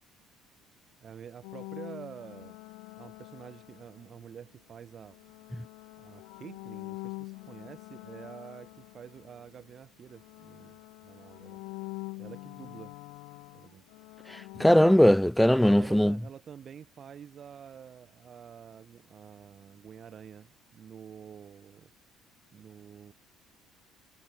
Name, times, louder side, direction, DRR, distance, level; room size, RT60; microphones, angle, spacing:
voice 1, 1.0-2.6 2.9-5.2 6.0-11.6 12.2-13.0 13.5-13.8 15.8-21.9 22.5-23.1, right 8 dB, 35° right, 3.3 m, -48 dB
sound 1, 1.4-4.3 5.0-9.8 10.1-14.9, left 28 dB, 90° left, 1.0 m, -45 dB
voice 2, 14.3-16.2, equal, ahead, 0.4 m, -20 dB
cardioid pair, 140°, 0 cm